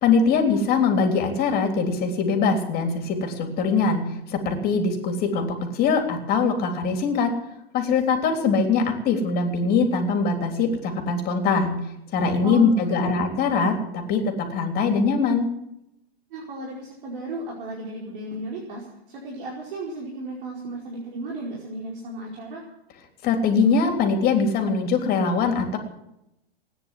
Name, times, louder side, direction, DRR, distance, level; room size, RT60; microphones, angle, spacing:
voice 1, 0.0-4.0 4.3-7.3 7.7-11.8 12.1-15.5 23.2-25.8, left 4 dB, 30° left, 4 dB, 3.4 m, -22 dB
voice 2, 12.4-13.3 16.3-22.6, right 1 dB, 60° right, -2 dB, 4.8 m, -35 dB
18.5 x 9.9 x 7.6 m, 0.83 s
hypercardioid pair, 130°, 31 cm